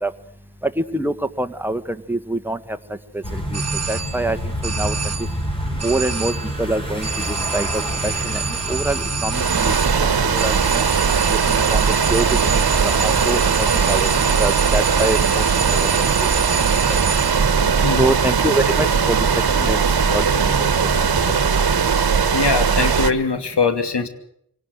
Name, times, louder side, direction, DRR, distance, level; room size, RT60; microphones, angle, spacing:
voice 1, 0.8-1.8 2.1-2.6 3.3-3.6 3.9-4.4 4.6-4.9 5.8-6.3 6.6-8.4 8.7-10.8 11.5-14.1 14.4-15.4 15.7-16.1 18.0-19.3 19.5-19.8 20.1-20.2 20.6-20.7, right 1 dB, 5° right, 8 dB, 1.5 m, -25 dB
sound 1, 3.2-21.5, equal, 15° left, 5.4 m, -30 dB
sound 2, 3.5-4.4 4.6-5.4 5.8-6.6 7.0-17.6, right 6 dB, 40° right, 1.4 m, -28 dB
sound 3, 9.3-23.1, right 6 dB, 65° right, 1.3 m, -19 dB
voice 2, 17.8-18.1 22.3-24.1, left 4 dB, 85° left, 8 dB, 2.8 m, -21 dB
25.0 x 18.5 x 8.0 m, 0.71 s
wide cardioid pair, 70°, 40 cm